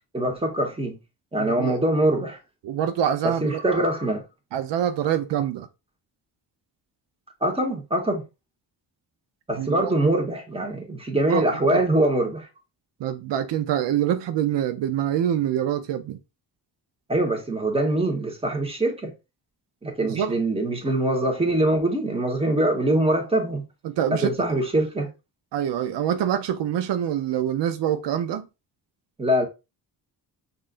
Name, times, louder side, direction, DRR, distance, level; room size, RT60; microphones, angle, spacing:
voice 1, 0.1-1.0 1.3-2.4 3.4-4.2 7.4-8.2 9.5-12.5 17.1-19.1 19.8-23.6 24.1-25.1 29.2-29.4, right 1 dB, 15° right, 1.2 m, -23 dB
voice 2, 1.4-1.7 2.6-3.6 4.5-5.7 9.6-9.9 11.3-11.8 13.0-16.2 20.0-20.3 23.8-24.5 25.5-28.5, right 10 dB, 80° right, 0.5 m, -25 dB
5.4 x 2.6 x 2.5 m
cardioid pair, 95°, 42 cm